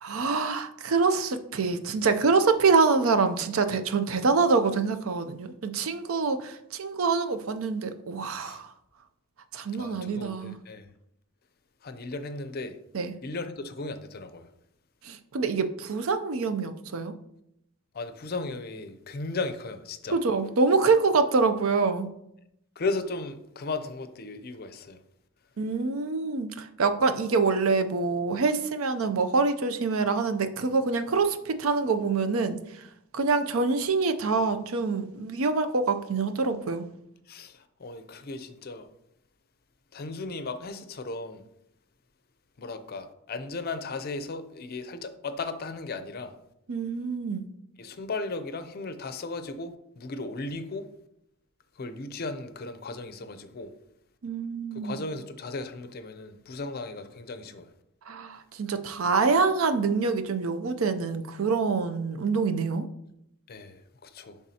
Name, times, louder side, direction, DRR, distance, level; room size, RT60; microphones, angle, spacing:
voice 1, 0.0-8.7 9.5-10.6 12.9-13.1 15.0-17.1 20.1-22.1 25.6-32.8 33.1-36.8 46.7-47.5 54.2-55.0 58.1-62.9, right 4 dB, 75° right, 0.5 m, -25 dB
voice 2, 9.8-10.9 11.8-12.8 13.2-14.5 17.9-20.2 22.8-25.0 37.3-38.9 39.9-41.4 42.6-46.3 47.8-50.8 51.8-53.7 54.7-57.7 63.5-64.4, left 3 dB, 45° left, 0.5 m, -36 dB
10.5 x 3.5 x 2.8 m
head